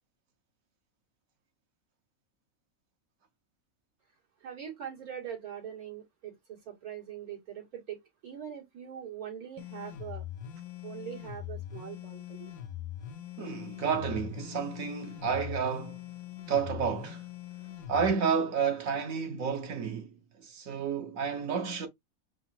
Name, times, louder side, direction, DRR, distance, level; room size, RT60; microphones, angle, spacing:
voice 1, 4.4-10.2 10.8-12.5, right 9 dB, 85° right, 2.7 m, -42 dB
sound 1, 9.6-18.1, left 11 dB, 80° left, 1.1 m, -42 dB
voice 2, 13.4-16.0 16.5-17.2 17.9-20.1 20.4-21.9, right 6 dB, 70° right, 1.2 m, -31 dB
4.8 x 2.0 x 4.2 m
omnidirectional pair, 1.5 m